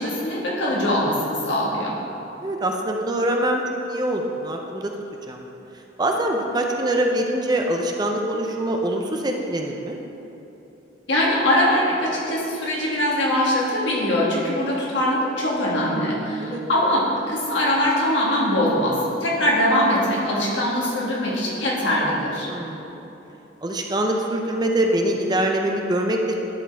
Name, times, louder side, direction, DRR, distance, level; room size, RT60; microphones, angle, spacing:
voice 1, 0.0-1.9 11.1-22.5, left 1 dB, 75° left, -5 dB, 1.7 m, -22 dB
voice 2, 2.4-3.6 3.9-4.9 5.3-5.4 6.0-10.0 16.4-16.6 22.5-23.0 23.6-26.4, right 1 dB, 20° right, 2 dB, 0.5 m, -24 dB
11.0 x 4.3 x 4.4 m, 3.0 s
head